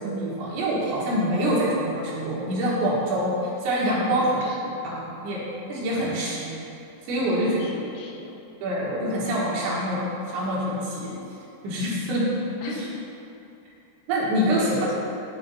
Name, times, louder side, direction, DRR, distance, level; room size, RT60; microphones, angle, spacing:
voice 1, 0.0-4.4 4.8-5.4 5.7-6.6 7.1-7.6 8.6-10.0 10.3-11.1 11.6-12.3 12.6-12.8 14.1-14.9, equal, 75° right, -6 dB, 3.8 m, -25 dB
voice 2, 4.2-4.8 7.3-8.4 12.6-12.8 14.5-14.9, left 1 dB, 80° left, -2 dB, 3.3 m, -38 dB
12.0 x 5.0 x 4.2 m, 2.8 s
omnidirectional pair, 5.2 m